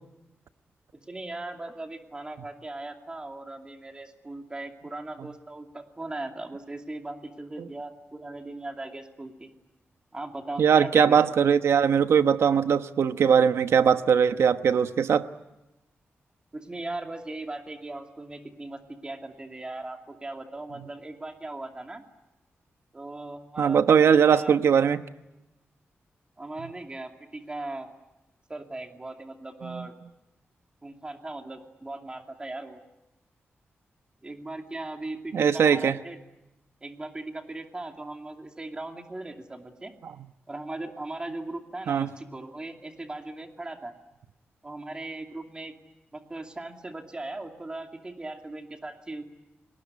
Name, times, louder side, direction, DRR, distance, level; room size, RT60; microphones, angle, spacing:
voice 1, 0.9-9.5 10.1-11.2 16.5-22.0 22.9-23.8 24.1-24.6 26.4-27.9 28.5-29.9 30.8-32.8 34.2-36.2 36.8-39.9 40.5-43.9 44.6-45.7 46.1-49.3, right 2 dB, 20° right, 4 dB, 2.5 m, -38 dB
voice 2, 10.6-15.2 23.6-25.0 29.6-29.9 35.3-36.0 41.9-42.1, right 7 dB, 85° right, 10 dB, 1.1 m, -20 dB
29.5 x 20.0 x 9.6 m, 0.97 s
wide cardioid pair, 145°, 4 cm